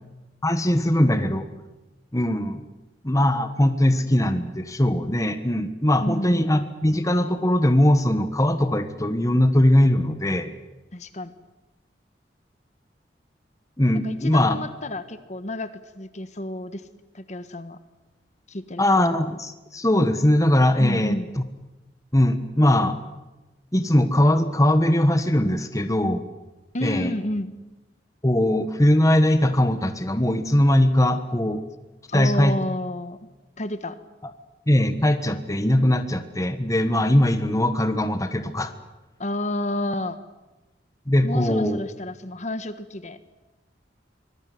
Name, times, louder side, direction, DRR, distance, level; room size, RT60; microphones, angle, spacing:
voice 1, 0.4-1.5 2.1-2.6 3.0-10.5 13.8-14.6 18.8-21.2 22.1-22.9 23.7-26.2 26.8-27.1 28.2-31.6 32.1-32.6 34.7-38.7 41.1-41.8, left 1 dB, 20° left, 9 dB, 1.4 m, -20 dB
voice 2, 6.0-6.7 10.9-11.3 14.0-16.8 17.1-17.8 18.5-18.8 20.8-21.3 26.7-27.5 32.1-33.2 33.6-34.0 39.2-40.2 41.2-43.2, left 1 dB, 40° left, 11 dB, 1.5 m, -30 dB
25.0 x 21.0 x 9.6 m, 1.1 s
head